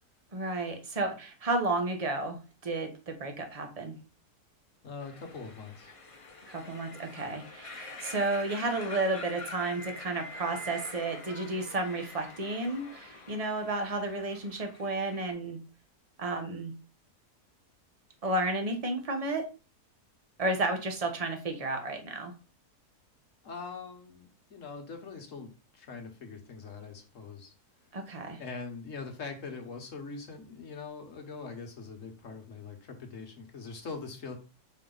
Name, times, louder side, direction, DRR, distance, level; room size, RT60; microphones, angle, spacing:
voice 1, 0.3-3.9 6.5-15.6 16.2-16.7 18.2-19.4 20.4-22.3 27.9-28.4, right 2 dB, 25° right, 5 dB, 1.0 m, -32 dB
voice 2, 4.8-5.9 23.4-27.5 28.4-34.4, left 4 dB, 55° left, 4 dB, 1.5 m, -42 dB
sound 1, 5.0-15.3, left 2 dB, 30° left, 0.7 m, -46 dB
5.6 x 4.7 x 3.9 m, 0.33 s
omnidirectional pair, 1.7 m